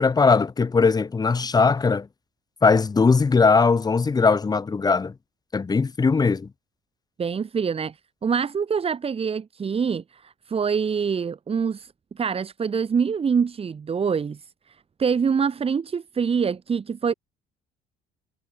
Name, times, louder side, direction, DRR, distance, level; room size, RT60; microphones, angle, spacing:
voice 1, 0.0-2.1 2.6-5.1 5.5-6.5, left 4 dB, 25° left, 1.5 m, -19 dB
voice 2, 7.2-17.1, right 6 dB, 35° right, 5.6 m, -25 dB
cardioid pair, 110°, 17 cm